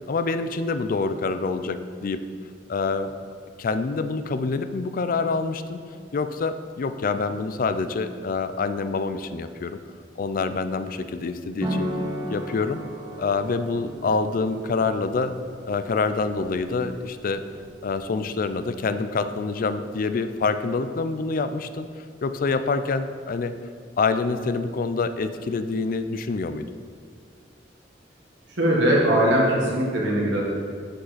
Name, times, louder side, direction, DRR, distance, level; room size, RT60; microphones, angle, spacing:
voice 1, 0.1-2.3 2.7-3.1 3.6-5.8 6.1-9.8 10.2-11.9 12.3-12.8 13.2-15.3 15.6-17.4 17.8-21.9 22.2-23.6 24.0-26.7, left 4 dB, 50° left, 10 dB, 0.4 m, -26 dB
sound 1, 11.6-18.9, equal, 25° right, 1.1 m, -36 dB
voice 2, 28.6-30.4, right 1 dB, 75° right, -4 dB, 1.5 m, -20 dB
9.7 x 5.4 x 4.1 m, 2.1 s
head